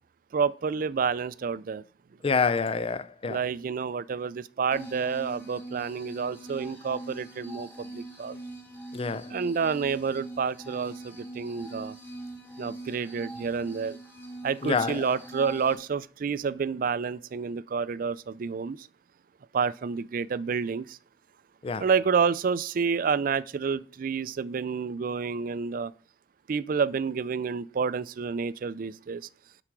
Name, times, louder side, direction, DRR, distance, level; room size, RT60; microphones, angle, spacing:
voice 1, 0.3-1.8 3.3-8.4 9.3-12.0 12.6-14.0 14.4-18.9 19.5-21.0 21.8-25.9 26.5-29.2, right 5 dB, 50° right, 0.4 m, -29 dB
voice 2, 2.2-3.4 8.9-9.3 14.6-15.0 21.6-21.8, left 5 dB, 30° left, 0.4 m, -27 dB
sound 1, 4.7-15.7, right 2 dB, 15° left, 4.3 m, -42 dB
11.5 x 4.8 x 5.9 m
head